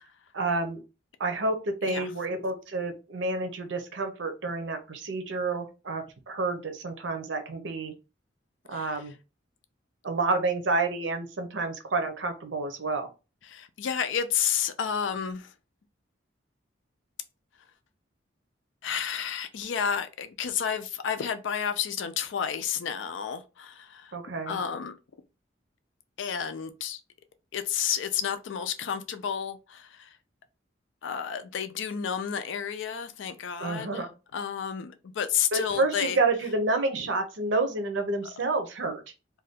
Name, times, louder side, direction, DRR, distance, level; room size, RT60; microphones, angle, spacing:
voice 1, 0.3-0.8 1.2-7.9 8.7-9.1 10.0-13.1 24.1-24.6 33.6-34.1 35.5-39.0, right 3 dB, 75° right, 0.6 m, -29 dB
voice 2, 8.7-9.0 13.4-15.5 18.8-24.1 24.5-25.0 26.2-27.0 27.5-30.2 31.0-34.0 34.3-36.2, left 8 dB, 80° left, 0.4 m, -31 dB
2.6 x 2.3 x 3.4 m
head